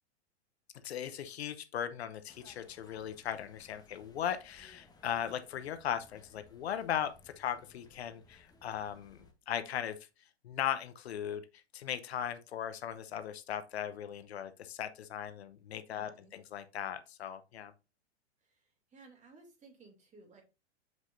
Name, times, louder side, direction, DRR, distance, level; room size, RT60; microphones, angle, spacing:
voice 1, 0.8-10.0 10.4-17.7, left 9 dB, 70° left, 0.8 m, -38 dB
sound 1, 2.3-9.3, left 3 dB, 10° left, 1.3 m, -61 dB
voice 2, 15.9-16.3 18.4-20.4, right 3 dB, 20° right, 2.6 m, -58 dB
7.4 x 6.1 x 2.6 m
hypercardioid pair, 100°, 34 cm